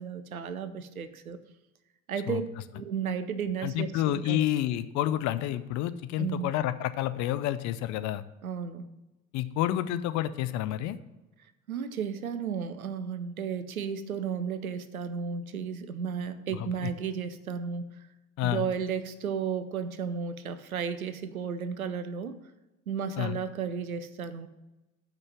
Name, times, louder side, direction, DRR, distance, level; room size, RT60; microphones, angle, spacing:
voice 1, 0.0-1.4 2.1-2.4 2.7-4.4 6.2-6.5 8.4-8.9 11.7-17.8 18.4-22.4 22.9-24.5, right 7 dB, 80° right, 12 dB, 0.8 m, -33 dB
voice 2, 3.6-8.2 9.3-11.0 16.5-16.9 18.4-18.7 23.2-23.4, left 12 dB, 45° left, 12 dB, 0.6 m, -29 dB
9.0 x 5.3 x 7.4 m, 1.0 s
figure-of-eight pair, 65°, 42 cm